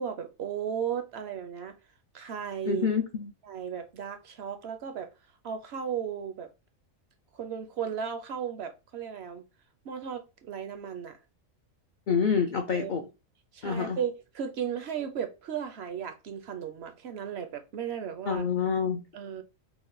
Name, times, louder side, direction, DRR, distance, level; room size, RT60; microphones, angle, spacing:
voice 1, 0.0-1.8 2.1-2.9 3.4-5.1 5.4-6.5 7.3-9.4 9.8-11.2 12.7-13.1 13.5-18.5 19.1-19.4, right 8 dB, 65° right, 0.7 m, -35 dB
voice 2, 2.7-3.3 12.1-13.0 13.6-14.0 18.3-19.0, left 6 dB, 70° left, 0.4 m, -27 dB
3.9 x 2.1 x 3.8 m
omnidirectional pair, 1.4 m